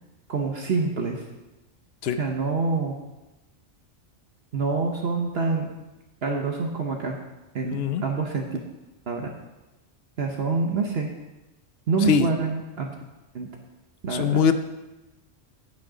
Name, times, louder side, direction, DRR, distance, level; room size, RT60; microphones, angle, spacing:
voice 1, 0.3-1.2 2.2-2.9 4.5-5.7 6.2-7.2 7.5-8.6 9.1-9.3 10.2-11.1 11.9-12.9 13.3-13.5 14.0-14.4, right 4 dB, 55° right, 2 dB, 1.0 m, -26 dB
voice 2, 7.7-8.0 12.1-12.3 14.1-14.5, left 7 dB, 60° left, 11 dB, 0.8 m, -22 dB
9.4 x 6.2 x 5.0 m, 1.1 s
omnidirectional pair, 1.3 m